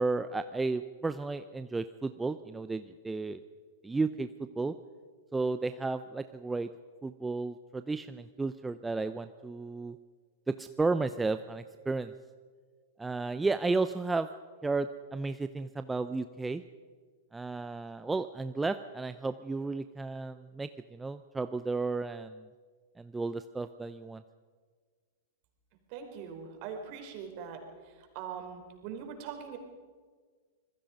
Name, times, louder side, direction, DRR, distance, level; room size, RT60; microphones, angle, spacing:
voice 1, 0.0-3.4 3.8-4.8 5.3-6.7 7.0-10.0 10.5-12.1 13.0-14.3 14.6-16.6 17.3-22.5 23.0-24.2, right 3 dB, 10° right, 11 dB, 0.7 m, -33 dB
voice 2, 25.9-29.6, right 7 dB, 50° right, 4 dB, 4.7 m, -42 dB
26.0 x 21.0 x 5.2 m, 1.5 s
hypercardioid pair, 105°, 0 cm